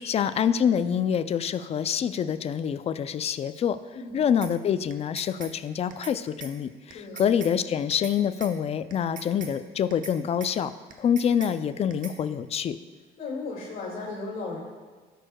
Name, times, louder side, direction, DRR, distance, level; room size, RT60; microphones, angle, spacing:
voice 1, 0.0-3.8 4.1-12.8, left 8 dB, 40° left, 13 dB, 0.4 m, -26 dB
sound 1, 4.4-4.5 4.9-5.5 5.9-6.1 6.4-6.5 6.9-7.5 7.9-8.1 8.4-8.5 8.9-9.5 9.9-10.1 10.4-10.5 10.9-11.5 11.9-12.1, right 6 dB, 55° right, 1.0 m, -41 dB
voice 2, 6.9-7.2 13.2-14.6, left 3 dB, 60° left, -4 dB, 2.2 m, -35 dB
13.0 x 6.4 x 2.3 m, 1.4 s
cardioid pair, 110°, 17 cm